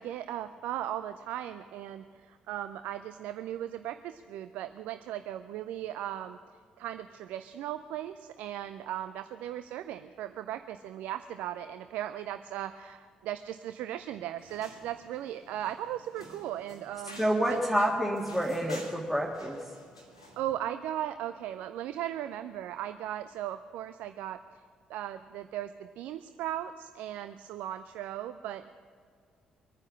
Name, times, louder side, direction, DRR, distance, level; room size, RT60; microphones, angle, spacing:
voice 1, 0.0-6.4 6.8-17.2 17.5-17.9 20.4-24.6 24.9-28.7, right 12 dB, 60° right, 11 dB, 0.4 m, -37 dB
sound 1, 14.4-20.5, equal, 85° left, 1.5 m, -50 dB
voice 2, 17.2-19.6, equal, 5° right, -2 dB, 1.7 m, -28 dB
23.5 x 9.7 x 6.0 m, 2.2 s
figure-of-eight pair, 40°, 3 cm